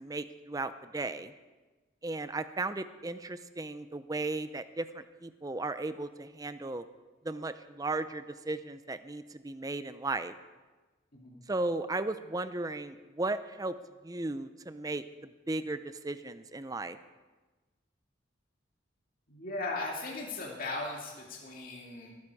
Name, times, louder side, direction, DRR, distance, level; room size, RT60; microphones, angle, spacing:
voice 1, 0.0-1.3 2.0-6.8 7.2-10.3 11.5-13.7 14.0-17.0, right 2 dB, 20° right, 12 dB, 0.5 m, -36 dB
voice 2, 19.3-22.2, left 2 dB, 45° left, -3 dB, 2.4 m, -38 dB
19.5 x 9.8 x 4.8 m, 1.3 s
head